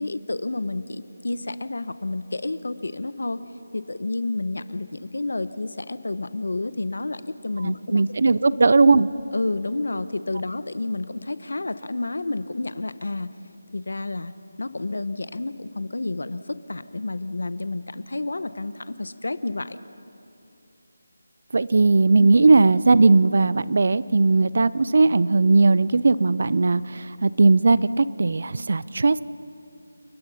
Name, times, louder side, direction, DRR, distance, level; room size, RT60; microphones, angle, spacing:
voice 1, 0.0-3.4 3.7-8.0 8.6-8.7 9.3-13.3 13.7-14.3 14.6-19.8 22.2-22.3, left 2 dB, 75° left, 13 dB, 1.0 m, -30 dB
voice 2, 7.6-9.1 21.5-29.3, right 3 dB, 50° right, 18 dB, 0.6 m, -18 dB
29.5 x 19.0 x 5.8 m, 3.0 s
figure-of-eight pair, 175°, 0 cm